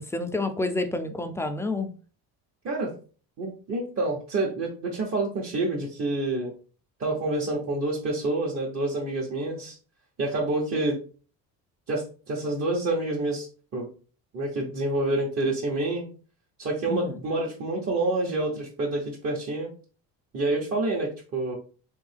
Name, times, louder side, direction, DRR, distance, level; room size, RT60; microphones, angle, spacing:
voice 1, 0.0-1.9 16.9-17.2, left 2 dB, 10° left, 7 dB, 0.3 m, -29 dB
voice 2, 3.4-6.5 7.0-9.7 10.2-11.0 11.9-13.5 13.7-13.9 14.3-16.1 16.6-19.7 20.3-21.5, right 2 dB, 40° right, -4 dB, 1.1 m, -28 dB
3.6 x 3.4 x 3.4 m, 0.38 s
cardioid pair, 135°, 36 cm